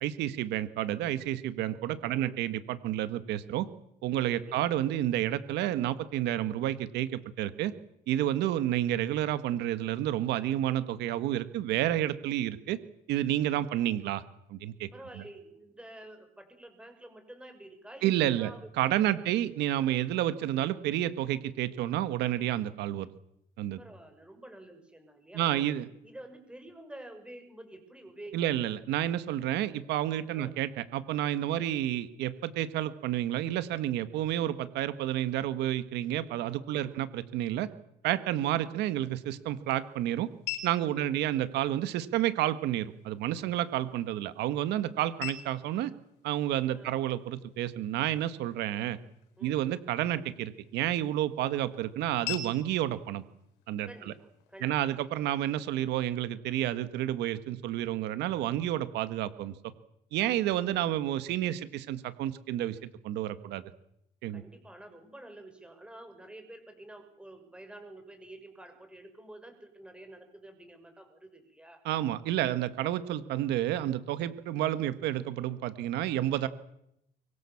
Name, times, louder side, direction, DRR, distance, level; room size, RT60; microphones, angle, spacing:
voice 1, 0.0-3.7 4.0-7.7 8.1-12.8 13.1-14.2 14.5-14.9 18.0-18.5 18.8-23.1 23.6-23.8 25.3-25.9 28.3-37.7 38.0-40.3 40.6-45.9 46.2-49.0 49.4-53.2 53.7-54.1 54.6-59.5 60.1-63.6 64.2-64.4 71.9-76.5, right 12 dB, 85° right, 12 dB, 1.7 m, -30 dB
voice 2, 14.9-18.7 19.1-19.2 23.8-25.6 26.0-28.5 30.3-30.5 31.5-31.7 36.7-37.0 40.8-41.3 46.7-47.0 49.4-49.6 53.8-54.9 64.3-71.8, right 1 dB, 5° right, 7 dB, 6.1 m, -49 dB
sound 1, 38.7-54.7, left 10 dB, 90° left, 4.6 m, -47 dB
24.0 x 24.0 x 7.3 m, 0.79 s
cardioid pair, 110°, 17 cm